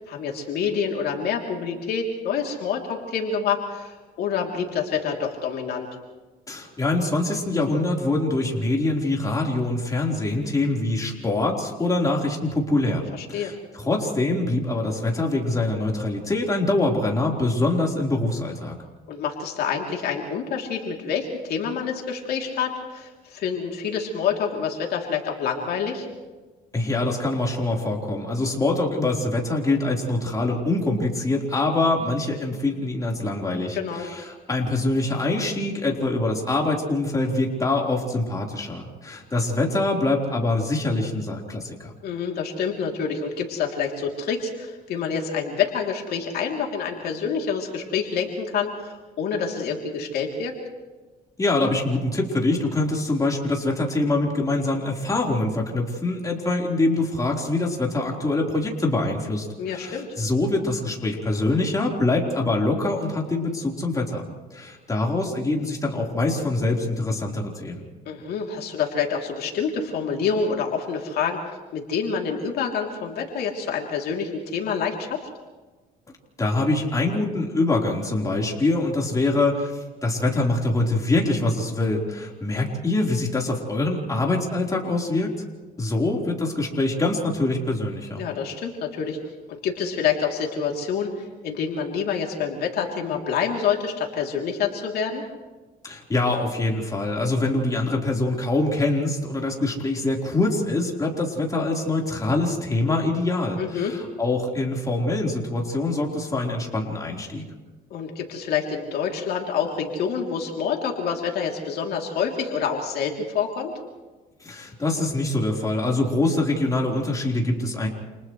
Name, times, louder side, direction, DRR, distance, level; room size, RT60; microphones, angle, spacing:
voice 1, 0.1-5.9 13.2-13.5 19.1-26.1 33.7-34.1 42.0-50.5 59.6-60.1 68.0-75.2 88.2-89.2 89.5-95.2 103.6-103.9 107.9-113.7, left 6 dB, 70° left, 0 dB, 3.2 m, -27 dB
voice 2, 6.5-18.8 26.7-41.9 51.4-67.8 76.4-85.3 85.8-88.2 95.8-107.4 114.4-117.9, left 2 dB, 20° left, -1 dB, 4.2 m, -24 dB
29.5 x 28.5 x 3.3 m, 1.3 s
cardioid pair, 110°, 17 cm